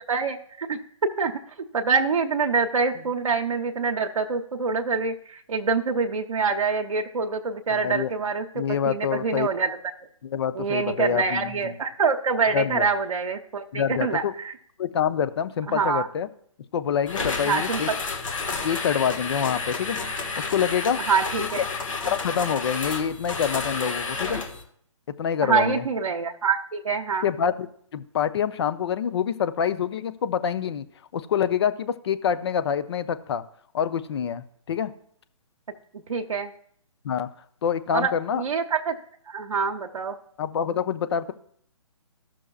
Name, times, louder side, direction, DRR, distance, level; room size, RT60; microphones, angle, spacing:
voice 1, 0.1-1.3 1.7-9.8 10.5-14.5 15.7-16.1 17.4-18.0 21.0-21.6 25.4-27.3 35.9-36.5 37.9-38.9 39.3-40.2, right 5 dB, 75° right, 3 dB, 0.8 m, -25 dB
voice 2, 7.7-8.1 8.5-9.5 10.2-11.7 12.5-12.9 13.7-14.3 14.8-16.3 16.7-17.9 18.6-20.0 20.3-21.0 21.4-21.6 22.1-24.4 25.2-25.8 27.2-27.7 27.9-30.8 31.1-33.4 33.7-34.9 37.0-37.3 37.6-38.4 40.4-41.3, left 8 dB, 50° left, 12 dB, 0.6 m, -26 dB
sound 1, 17.1-24.6, left 4 dB, 65° left, 1.6 m, -30 dB
14.5 x 6.1 x 2.3 m, 0.64 s
hypercardioid pair, 145°, 18 cm